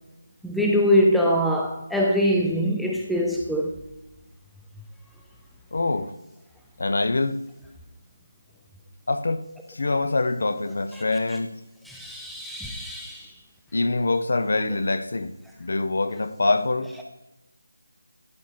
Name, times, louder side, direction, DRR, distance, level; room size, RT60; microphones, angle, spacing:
voice 1, 0.4-3.8 11.9-13.3, equal, ahead, 0.5 m, -23 dB
voice 2, 5.7-6.1 6.8-7.4 9.1-9.4 9.7-11.6 13.7-15.3 15.6-16.9, left 2 dB, 60° left, 0.7 m, -24 dB
11.5 x 4.1 x 4.7 m
figure-of-eight pair, 170°, 0 cm